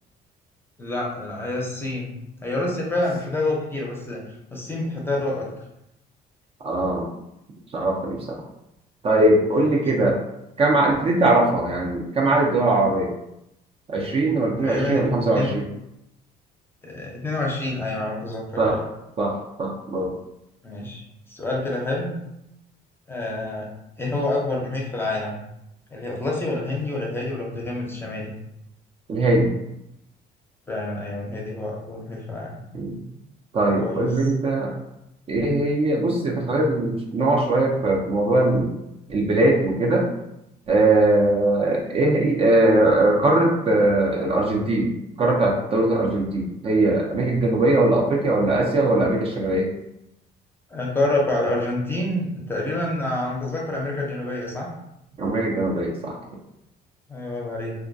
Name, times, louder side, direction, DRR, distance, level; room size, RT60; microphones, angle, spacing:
voice 1, 0.8-2.1 2.4-4.2 4.5-5.5 14.6-15.5 16.8-18.8 20.6-21.0 21.3-22.1 23.1-23.7 24.0-25.4 25.9-28.3 30.7-32.6 33.8-34.1 50.7-54.7 57.1-57.7, left 2 dB, 15° left, -3 dB, 0.6 m, -27 dB
voice 2, 6.6-7.1 7.7-8.4 9.0-10.2 10.6-13.1 13.9-15.7 18.6-18.8 19.2-20.1 29.1-29.5 32.7-33.0 33.5-34.7 35.3-38.7 39.1-40.1 40.7-49.7 55.2-56.2, right 2 dB, 35° right, -2 dB, 0.4 m, -20 dB
2.3 x 2.1 x 2.5 m, 0.84 s
cardioid pair, 110°, 17 cm